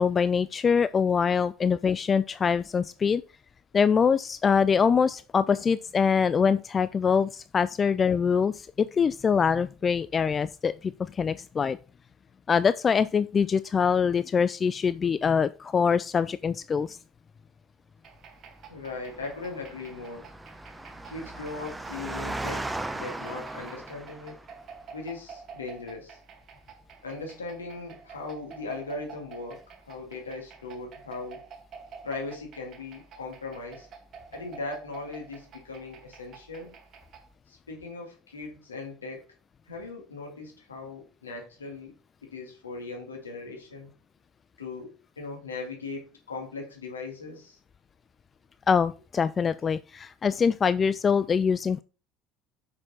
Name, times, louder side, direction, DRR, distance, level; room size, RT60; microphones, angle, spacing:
voice 1, 0.0-3.2 3.7-11.8 12.5-17.0 48.7-51.8, left 6 dB, 30° left, 0.3 m, -24 dB
sound 1, 18.0-37.3, right 5 dB, 45° right, 1.4 m, -49 dB
voice 2, 18.7-20.2 21.1-22.6 22.9-24.3 24.9-26.2 27.0-29.6 29.9-31.4 32.0-33.9 34.3-36.7 37.5-39.3 39.7-41.9 42.3-43.9 44.6-47.6, left 3 dB, 75° left, 2.3 m, -39 dB
Engine, 18.9-24.5, right 2 dB, 10° right, 0.8 m, -37 dB
6.2 x 6.1 x 4.2 m
figure-of-eight pair, 60°, 0 cm